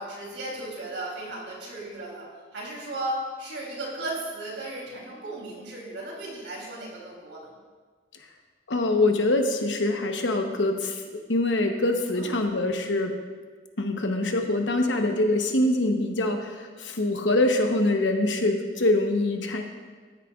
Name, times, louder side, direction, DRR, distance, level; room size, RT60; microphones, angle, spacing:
voice 1, 0.0-2.3 2.5-7.5 12.1-12.5, right 1 dB, 90° right, -3 dB, 3.2 m, -35 dB
voice 2, 8.7-13.1 13.8-19.6, left 2 dB, 90° left, 4 dB, 1.0 m, -24 dB
13.5 x 9.8 x 2.4 m, 1.5 s
head